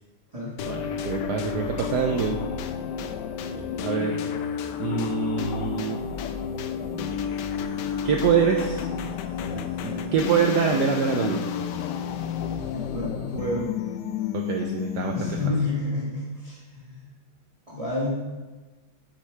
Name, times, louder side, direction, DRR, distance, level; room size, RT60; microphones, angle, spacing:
Relaxing Dubstep music, 0.6-15.7, left 7 dB, 80° left, 0.9 m, -31 dB
voice 1, 0.7-2.4 3.8-4.2 4.8-6.0 8.0-8.9 9.8-11.4 14.3-15.4, right 6 dB, 80° right, 3 dB, 0.9 m, -25 dB
voice 2, 12.7-13.7 15.1-17.1 17.7-18.1, left 2 dB, 30° right, -7 dB, 0.6 m, -30 dB
8.1 x 6.5 x 3.3 m, 1.2 s
omnidirectional pair, 2.3 m